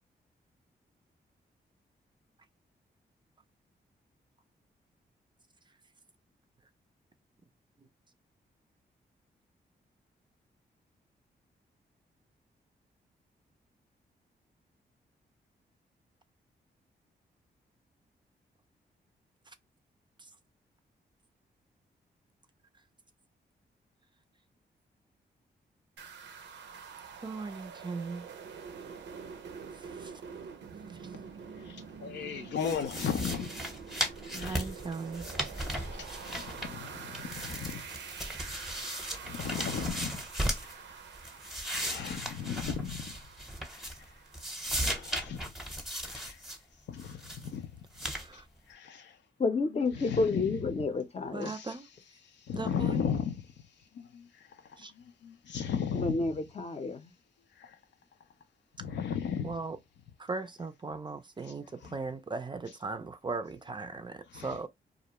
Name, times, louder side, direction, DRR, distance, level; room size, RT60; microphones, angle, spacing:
sound 1, 26.0-44.5, right 6 dB, 90° right, 0.5 m, -46 dB
voice 1, 27.2-28.3 29.8-30.1 34.3-35.2 48.1-48.4 51.3-51.9 52.5-53.0 54.8-54.9 59.4-59.8 60.2-64.7, right 4 dB, 25° right, 0.4 m, -38 dB
voice 2, 31.6-33.5 34.3-34.7 35.5-37.9 39.2-40.2 40.6-40.9 41.4-43.1 43.7-44.1 44.6-45.5 46.0-46.5 46.9-47.9 48.3-48.4 48.7-49.2 49.7-50.8 51.4-51.8 52.2-53.5 53.9-56.3 57.6-57.8 58.8-59.6 61.4-61.5 61.8-61.9 64.3-64.6, left 7 dB, 80° left, 0.5 m, -37 dB
sound 2, 32.6-36.9 37.1-40.7 41.1-44.1 44.3-46.6 47.0-47.5 47.9-48.3, equal, ahead, 0.8 m, -37 dB
voice 3, 49.4-51.5 55.9-57.1, left 3 dB, 35° left, 0.6 m, -30 dB
2.4 x 2.1 x 2.8 m
cardioid pair, 70°, 18 cm